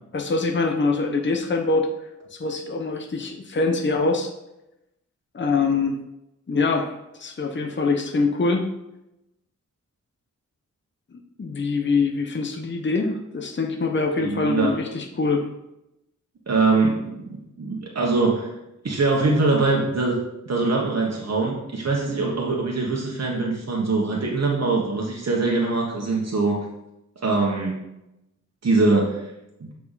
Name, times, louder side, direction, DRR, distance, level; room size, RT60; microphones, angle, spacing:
voice 1, 0.1-1.9 2.3-4.3 5.3-6.0 6.5-6.9 7.2-8.7 11.4-15.5, left 3 dB, 40° left, 2 dB, 0.9 m, -24 dB
voice 2, 14.2-14.7 16.5-18.5 18.8-20.2 20.5-26.7 27.2-27.8 28.6-29.3 29.6-29.7, right 3 dB, 55° right, -2 dB, 1.3 m, -23 dB
8.1 x 4.7 x 4.1 m, 0.89 s
wide cardioid pair, 95°, 30 cm